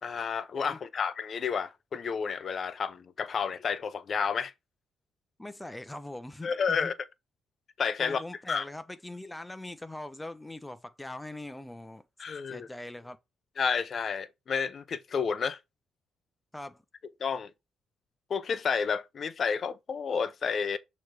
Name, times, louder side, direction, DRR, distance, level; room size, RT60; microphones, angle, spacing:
voice 1, 0.0-4.5 6.4-6.9 7.8-8.2 8.5-8.6 12.2-12.7 13.6-15.6 17.2-17.5 18.3-20.8, left 6 dB, 50° left, 0.6 m, -30 dB
voice 2, 5.4-6.9 8.0-12.0 12.5-13.2 16.5-16.8, left 1 dB, 10° left, 0.8 m, -41 dB
6.5 x 3.2 x 4.7 m
cardioid pair, 90°, 0 cm